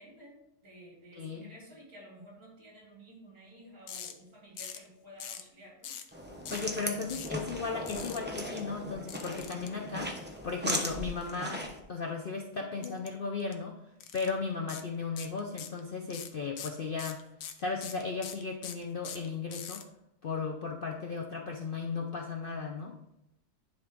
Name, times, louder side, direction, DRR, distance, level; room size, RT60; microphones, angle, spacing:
voice 1, 0.0-6.0, right 1 dB, 60° right, -4 dB, 3.3 m, -53 dB
voice 2, 1.1-1.5 6.5-13.8 14.1-17.2 17.6-19.8 20.2-23.0, left 4 dB, 65° left, 1 dB, 0.5 m, -36 dB
sound 1, 3.9-4.1 4.6-4.9 5.2-5.5 5.8-6.1 6.4-6.7 7.1-7.3 7.9-8.2 9.1-9.7 12.8-13.1 13.4-13.5 14.0-14.3 14.7-14.8 15.2-15.8 16.1-19.8, left 9 dB, 85° left, 1.3 m, -42 dB
sound 2, 6.1-11.8, equal, 10° right, 0.5 m, -38 dB
10.5 x 3.6 x 3.7 m, 0.84 s
omnidirectional pair, 1.7 m